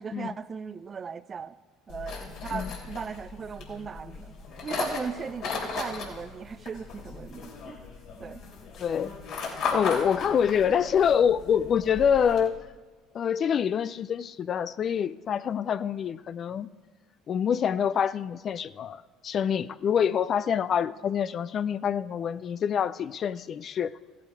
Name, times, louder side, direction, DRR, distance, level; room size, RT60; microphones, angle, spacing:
voice 1, 0.0-1.6 1.9-4.3 4.6-7.8 8.2-8.4 9.6-9.9, right 6 dB, 35° right, 16 dB, 0.4 m, -37 dB
sound 1, 1.9-12.5, left 5 dB, 65° left, 3.2 m, -36 dB
voice 2, 8.8-9.1 9.7-12.5 13.1-16.7 17.3-23.9, left 8 dB, 45° left, 16 dB, 0.4 m, -26 dB
15.5 x 8.4 x 4.8 m, 1.4 s
hypercardioid pair, 75°, 0 cm